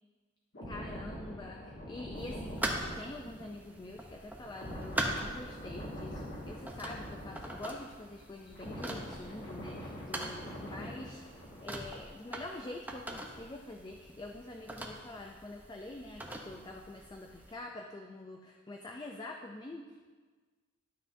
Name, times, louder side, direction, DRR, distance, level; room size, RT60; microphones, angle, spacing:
sound 1, 0.5-8.0 8.3-12.0 12.3-12.6, equal, 60° left, 2.1 m, -44 dB
voice 1, 0.7-20.1, left 2 dB, 20° left, 2 dB, 0.4 m, -46 dB
sound 2, 2.1-17.5, right 1 dB, 10° right, 0.7 m, -43 dB
12.0 x 5.8 x 2.7 m, 1.4 s
head